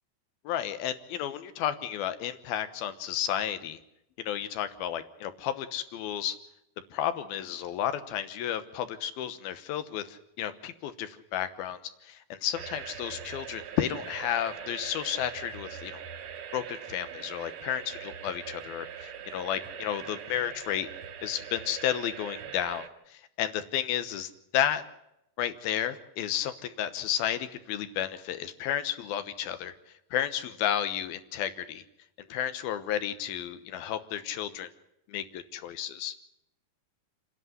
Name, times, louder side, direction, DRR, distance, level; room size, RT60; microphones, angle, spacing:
voice 1, 0.4-3.8 4.2-6.4 6.9-11.8 12.0-16.0 16.5-20.9 21.2-24.8 25.4-29.7 30.1-31.8 32.3-34.7 35.1-36.1, left 10 dB, 80° left, 11 dB, 2.9 m, -32 dB
sound 1, 12.5-22.9, right 8 dB, 65° right, 1.9 m, -42 dB
28.0 x 10.5 x 9.5 m, 0.83 s
omnidirectional pair, 4.3 m